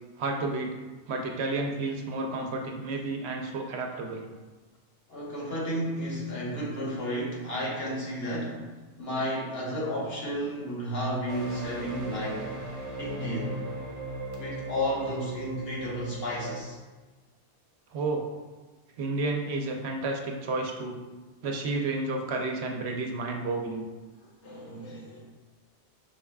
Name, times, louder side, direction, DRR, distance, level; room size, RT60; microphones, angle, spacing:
voice 1, 0.2-0.7 1.1-4.2 17.9-18.3 19.0-21.0 21.4-23.8, right 3 dB, 70° right, 2 dB, 0.9 m, -31 dB
voice 2, 5.1-8.7 9.0-12.5 13.0-13.6 14.4-16.8 24.4-25.3, equal, 65° left, -4 dB, 1.3 m, -32 dB
sound 1, 11.3-16.6, right 1 dB, 35° right, 0.7 m, -38 dB
5.9 x 3.4 x 2.3 m, 1.3 s
omnidirectional pair, 1.1 m